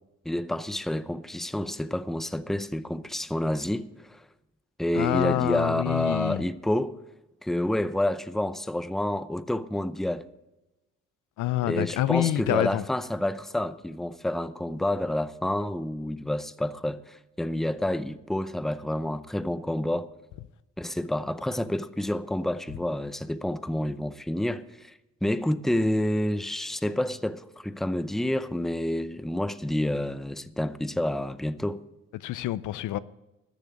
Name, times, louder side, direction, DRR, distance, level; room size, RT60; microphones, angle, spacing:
voice 1, 0.2-4.2 4.8-7.0 7.4-10.3 11.7-20.1 20.8-24.9 25.2-31.8, left 1 dB, ahead, 0.6 m, -29 dB
voice 2, 4.9-6.4 11.4-12.8 32.2-33.0, left 14 dB, 80° left, 0.6 m, -27 dB
13.0 x 6.8 x 9.6 m
cardioid pair, 90°, 30 cm